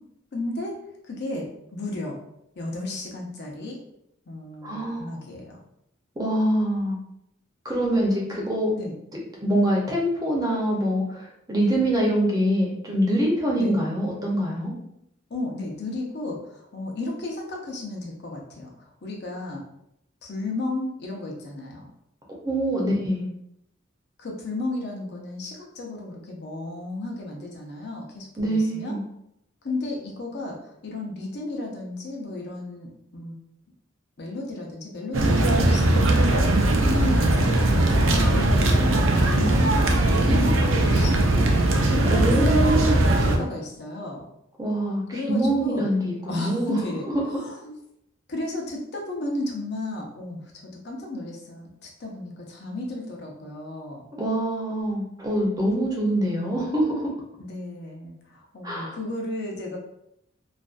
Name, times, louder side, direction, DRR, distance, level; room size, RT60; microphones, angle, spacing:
voice 1, 0.3-0.8 1.0-2.2 2.5-3.8 4.3-5.6 8.8-9.0 13.6-13.8 15.3-19.6 20.2-21.9 24.2-29.0 29.6-33.4 34.2-39.7 40.2-41.5 41.8-42.7 43.2-44.2 45.1-45.9 46.2-47.8 48.3-54.0 57.4-59.8, left 2 dB, 55° left, 0 dB, 0.6 m, -33 dB
voice 2, 4.6-5.1 6.2-7.0 7.6-8.7 9.4-14.7 22.3-23.3 28.4-29.0 42.1-43.1 44.6-46.8 47.1-47.2 54.2-57.1 58.6-59.0, right 1 dB, 20° right, -3 dB, 0.6 m, -24 dB
sound 1, 35.1-43.4, right 1 dB, 70° right, 0.4 m, -20 dB
2.4 x 2.2 x 2.4 m, 0.79 s
head